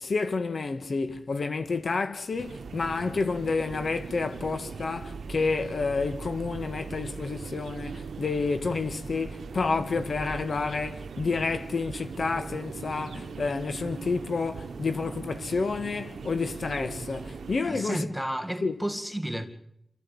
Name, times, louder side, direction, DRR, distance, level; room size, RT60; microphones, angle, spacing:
voice 1, 0.0-18.1 18.6-18.7, left 4 dB, 55° left, 1.5 m, -29 dB
sound 1, 2.4-17.6, right 5 dB, 90° right, 0.9 m, -40 dB
voice 2, 17.6-19.5, right 1 dB, ahead, 2.1 m, -31 dB
28.5 x 14.5 x 8.6 m
wide cardioid pair, 130°, 0 cm